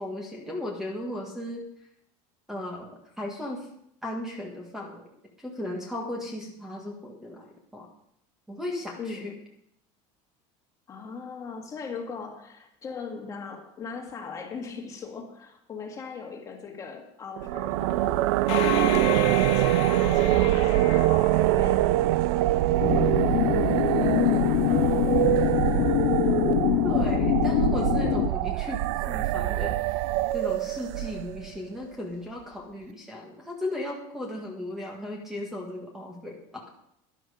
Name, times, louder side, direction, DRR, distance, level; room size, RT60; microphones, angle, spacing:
voice 1, 0.0-1.6 2.5-3.7 4.0-5.1 5.4-7.5 7.7-7.9 8.5-9.3 24.1-25.0 26.8-28.8 29.1-30.0 30.3-36.6, left 1 dB, 5° right, 0 dB, 1.6 m, -36 dB
voice 2, 9.0-9.4 10.9-18.3 18.6-21.1 21.4-22.1, left 5 dB, 25° left, 2 dB, 1.9 m, -39 dB
sound 1, 17.4-31.5, right 16 dB, 80° right, 0.5 m, -24 dB
sound 2, 18.5-22.1, left 12 dB, 80° left, 2.1 m, -33 dB
sound 3, 22.8-28.3, left 18 dB, 50° left, 0.4 m, -24 dB
12.0 x 11.0 x 5.0 m, 0.74 s
cardioid pair, 165°, 14 cm